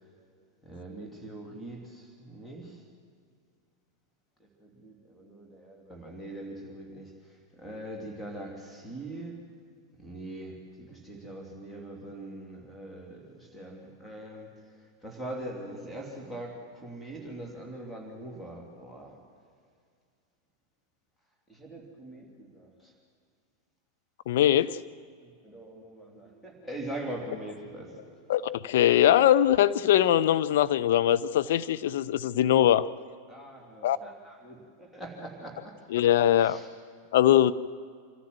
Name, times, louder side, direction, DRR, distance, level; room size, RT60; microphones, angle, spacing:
voice 1, 0.6-2.8 4.4-7.1 7.5-9.4 10.0-14.6 15.0-19.2 21.5-22.9 25.2-28.2 33.3-35.8 36.4-36.7, right 1 dB, 5° left, 0 dB, 3.1 m, -42 dB
voice 2, 24.3-24.8 28.3-32.9 33.8-34.0 35.9-36.6 37.1-37.5, left 11 dB, 55° left, 12 dB, 0.6 m, -22 dB
26.5 x 14.0 x 7.8 m, 2.2 s
figure-of-eight pair, 90°, 0 cm